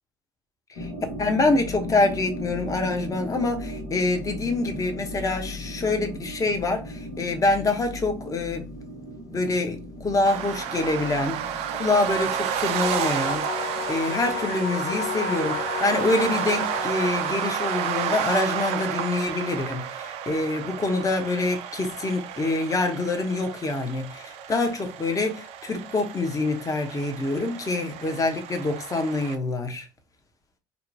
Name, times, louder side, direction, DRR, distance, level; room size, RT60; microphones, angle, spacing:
sound 1, 0.7-17.4, left 1 dB, 80° left, 1.0 m, -38 dB
voice 1, 1.2-8.7 9.3-29.9, left 2 dB, 30° left, 0.8 m, -26 dB
sound 2, 10.2-29.4, right 9 dB, 60° right, 0.4 m, -31 dB
sound 3, 12.2-18.4, left 9 dB, 50° left, 0.4 m, -34 dB
2.8 x 2.2 x 2.6 m
hypercardioid pair, 65°, 12 cm